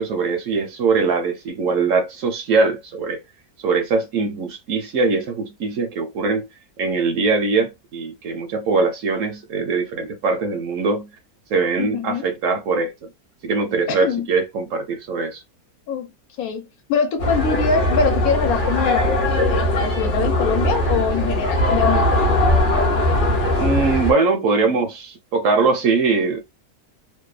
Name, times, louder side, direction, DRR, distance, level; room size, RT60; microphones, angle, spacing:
voice 1, 0.0-3.2 3.6-6.5 6.8-11.1 11.5-13.1 13.4-15.4 23.6-26.4, right 4 dB, 65° right, 0.9 m, -21 dB
voice 2, 11.8-12.3 13.9-14.3 15.9-16.1 16.4-19.2 19.5-22.2, left 6 dB, 75° left, 1.1 m, -24 dB
sound 1, 17.2-24.1, left 1 dB, 50° left, 0.6 m, -20 dB
2.8 x 2.2 x 2.3 m
omnidirectional pair, 1.6 m